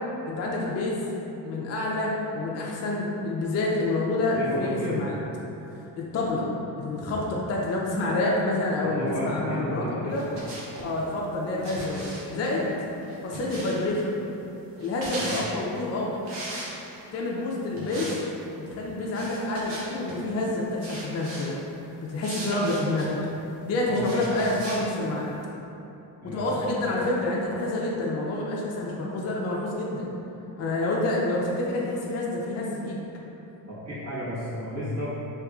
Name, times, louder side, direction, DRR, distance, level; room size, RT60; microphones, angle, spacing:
voice 1, 0.3-1.0 1.4-5.1 6.0-6.5 6.8-10.2 10.8-12.8 13.2-14.2 14.8-16.3 17.1-18.1 18.6-21.5 22.0-23.1 23.6-25.3 26.2-30.1 30.6-33.0, left 2 dB, 35° left, -3 dB, 0.5 m, -28 dB
voice 2, 4.3-5.2 8.8-10.2 11.5-11.7 15.1-15.3 17.7-17.9 23.8-24.2 26.2-26.5 26.9-27.0 33.7-35.1, equal, 35° right, -12 dB, 1.3 m, -33 dB
sound 1, 10.1-10.9 11.6-14.0 14.8-15.5 16.2-17.1 17.8-18.2 18.5-18.6 19.1-20.2 20.8-21.5 22.2-23.1 24.0-24.8, right 1 dB, 80° right, 0.9 m, -38 dB
3.5 x 2.9 x 2.3 m, 3.0 s
supercardioid pair, 80°, 44 cm